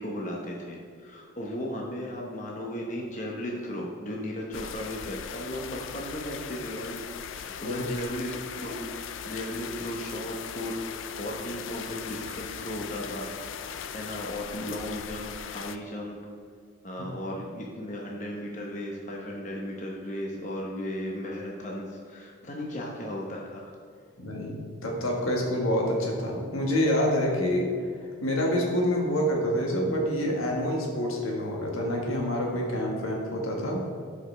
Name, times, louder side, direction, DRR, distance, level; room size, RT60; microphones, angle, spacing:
voice 1, 0.0-10.8 11.2-13.3 13.7-16.2 16.8-23.7, equal, 35° left, -1 dB, 0.9 m, -36 dB
sound 1, 4.5-15.8, left 7 dB, 70° left, 0.4 m, -39 dB
voice 2, 24.2-33.8, equal, 85° left, -1 dB, 1.6 m, -27 dB
12.5 x 5.0 x 3.3 m, 2.2 s
head